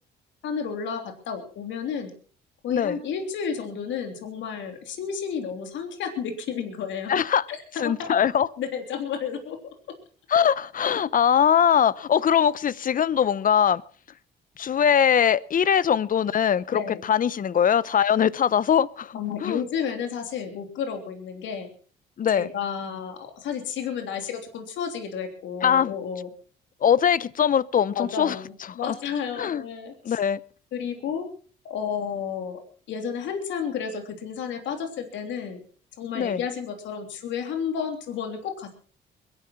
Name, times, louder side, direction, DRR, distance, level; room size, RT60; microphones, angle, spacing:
voice 1, 0.4-2.1 2.6-7.1 7.5-8.1 8.6-9.6 16.7-17.0 19.1-21.7 22.3-26.3 27.9-30.2 30.7-31.3 31.6-32.6 32.9-35.6 36.0-38.7, left 7 dB, 75° left, 3.2 m, -31 dB
voice 2, 7.1-7.5 7.8-8.5 10.3-13.8 14.6-19.6 22.2-22.5 25.6-25.9 26.8-28.4 28.6-28.9 29.4-29.6 30.0-30.4 36.1-36.4, left 8 dB, 45° left, 0.8 m, -22 dB
22.0 x 11.5 x 4.4 m
supercardioid pair, 75°, 19 cm